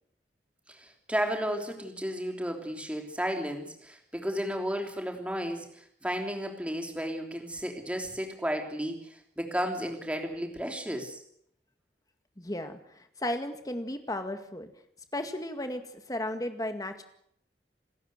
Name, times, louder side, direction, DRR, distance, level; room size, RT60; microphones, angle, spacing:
voice 1, 0.7-11.2, equal, 5° right, 3 dB, 3.3 m, -33 dB
voice 2, 12.4-14.7 15.1-17.0, left 1 dB, 20° left, 7 dB, 2.0 m, -35 dB
28.0 x 13.5 x 8.0 m, 0.71 s
head